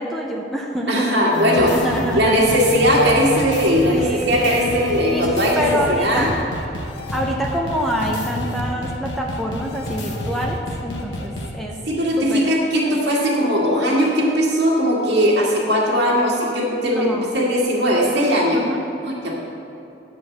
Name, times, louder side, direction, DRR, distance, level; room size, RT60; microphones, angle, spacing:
voice 1, 0.0-2.6 3.9-4.6 5.1-5.3 5.6-6.3 7.1-11.8 12.2-12.5 16.9-17.3 18.5-18.8, equal, ahead, -1 dB, 0.6 m, -26 dB
voice 2, 0.9-1.8 2.2-5.6 5.9-6.3 11.9-18.6 19.0-19.3, equal, 65° right, -3 dB, 2.0 m, -19 dB
sound 1, 1.3-11.5, left 1 dB, 75° left, 1.0 m, -29 dB
10.0 x 5.0 x 7.1 m, 2.7 s
head